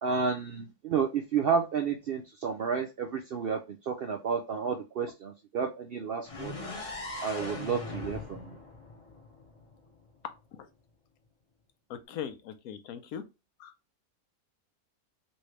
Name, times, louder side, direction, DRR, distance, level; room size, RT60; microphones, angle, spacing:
voice 1, 0.0-6.5 7.2-8.6, right 6 dB, 70° right, 0.5 m, -31 dB
sound 1, 6.2-10.1, left 2 dB, 30° left, 0.7 m, -40 dB
voice 2, 11.9-13.2 13.6-13.7, left 8 dB, 90° left, 1.1 m, -40 dB
3.2 x 2.7 x 3.1 m
omnidirectional pair, 1.5 m